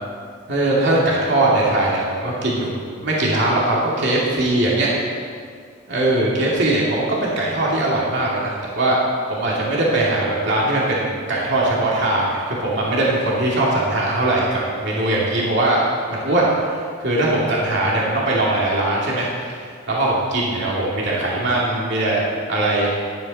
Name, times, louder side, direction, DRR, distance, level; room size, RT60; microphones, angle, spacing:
voice 1, 0.5-4.9 5.9-9.0 9.3-15.8 16.1-22.2 22.5-22.9, right 2 dB, 55° right, -5 dB, 2.5 m, -20 dB
16.5 x 10.5 x 4.3 m, 2.1 s
head